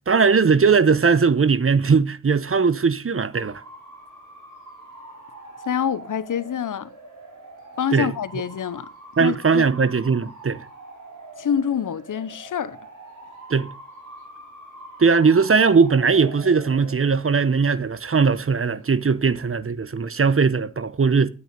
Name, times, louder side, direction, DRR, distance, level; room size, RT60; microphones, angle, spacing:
voice 1, 0.1-3.6 7.9-8.1 9.2-10.6 13.5-13.7 15.0-21.3, right 5 dB, 45° right, 0.9 m, -19 dB
Bark / Motor vehicle (road) / Siren, 3.3-19.6, right 2 dB, 75° right, 6.4 m, -43 dB
voice 2, 5.7-6.9 7.8-8.9 9.2-9.6 11.4-12.8, left 8 dB, 85° left, 0.8 m, -26 dB
9.5 x 8.4 x 5.1 m
cardioid pair, 50°, 31 cm